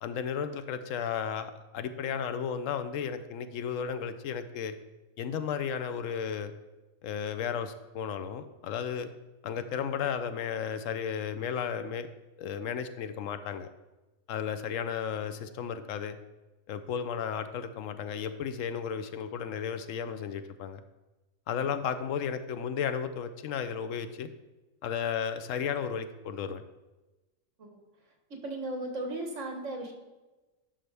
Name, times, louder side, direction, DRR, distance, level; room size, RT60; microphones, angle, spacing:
voice 1, 0.0-4.7 5.2-6.5 7.0-9.1 9.4-12.1 12.4-13.7 14.3-16.2 16.7-20.8 21.5-24.3 24.8-26.6, left 7 dB, 75° left, 10 dB, 1.0 m, -34 dB
voice 2, 28.3-29.9, right 2 dB, 65° right, 3 dB, 1.7 m, -36 dB
11.0 x 5.6 x 3.4 m, 1.1 s
omnidirectional pair, 1.4 m